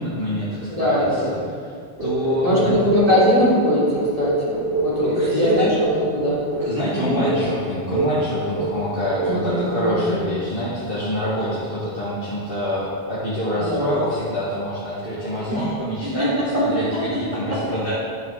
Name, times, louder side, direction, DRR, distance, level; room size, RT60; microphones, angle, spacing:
voice 1, 0.0-1.7 2.0-2.8 5.0-5.7 6.6-18.0, equal, 60° left, -9 dB, 2.4 m, -26 dB
voice 2, 0.7-1.3 2.4-6.4 7.0-7.2 9.2-10.2 13.5-13.9 15.5-15.7 16.0-17.6, equal, 35° right, -7 dB, 3.7 m, -22 dB
sound 1, 2.0-3.4 3.9-6.8 7.3-7.5 7.9-8.2 8.6-8.9 9.1-9.4 9.8-10.1, right 2 dB, 60° right, 3.1 m, -24 dB
13.0 x 11.5 x 4.2 m, 2.1 s
omnidirectional pair, 1.0 m